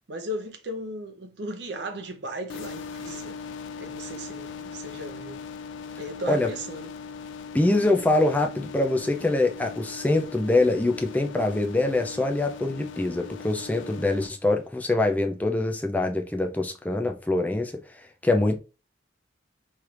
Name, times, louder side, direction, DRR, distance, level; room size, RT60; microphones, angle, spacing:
voice 1, 0.1-3.4 3.8-5.4 6.0-6.9, equal, 70° right, 0.7 m, -36 dB
sound 1, 2.5-14.3, left 5 dB, 85° left, 0.3 m, -40 dB
voice 2, 7.5-18.6, left 2 dB, 10° left, 0.3 m, -24 dB
3.2 x 3.1 x 2.5 m
head